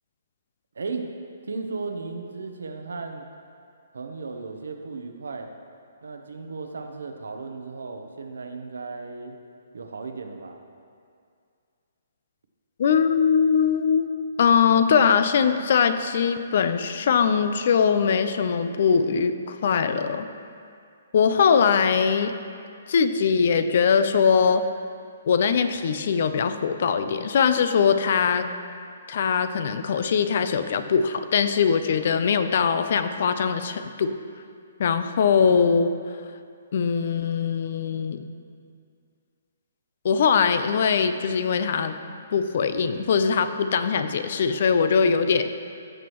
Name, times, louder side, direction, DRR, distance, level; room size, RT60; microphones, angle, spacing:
voice 1, 1.5-3.3 3.9-5.5 6.0-9.4 9.7-10.6, right 4 dB, 85° right, 5 dB, 0.9 m, -35 dB
voice 2, 12.8-14.1 14.4-20.3 21.1-22.4 22.9-24.6 25.3-28.5 29.1-34.1 34.8-35.9 36.7-38.3 40.0-42.0 42.3-45.5, left 6 dB, 55° left, 10 dB, 0.5 m, -21 dB
14.5 x 6.2 x 3.1 m, 2.3 s
hypercardioid pair, 150°, 0 cm